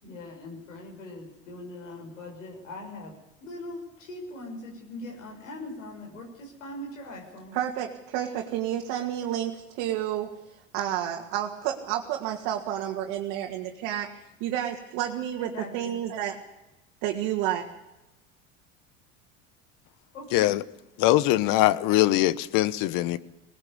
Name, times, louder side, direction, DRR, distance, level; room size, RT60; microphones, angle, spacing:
voice 1, 0.0-3.1 3.4-7.6 15.4-16.0 20.1-20.6, left 1 dB, 90° left, 6.2 m, -41 dB
voice 2, 7.5-10.4 10.7-14.1 14.4-16.4 17.0-17.6, right 11 dB, 65° right, 2.3 m, -30 dB
voice 3, 20.3-20.6 21.0-23.2, left 16 dB, 60° left, 1.1 m, -22 dB
20.0 x 19.0 x 8.4 m
hypercardioid pair, 85°, 37 cm